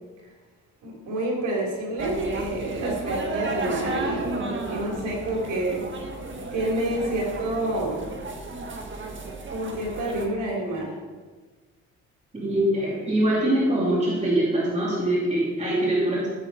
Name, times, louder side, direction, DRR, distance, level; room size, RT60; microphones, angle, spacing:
voice 1, 0.8-5.8 6.5-8.0 9.5-10.9, right 1 dB, 85° right, -2 dB, 3.6 m, -28 dB
sound 1, 2.0-10.3, right 2 dB, 40° right, 1.7 m, -33 dB
voice 2, 12.3-16.3, right 1 dB, 25° right, -5 dB, 3.0 m, -23 dB
13.5 x 7.9 x 4.3 m, 1.4 s
cardioid pair, 90°, 30 cm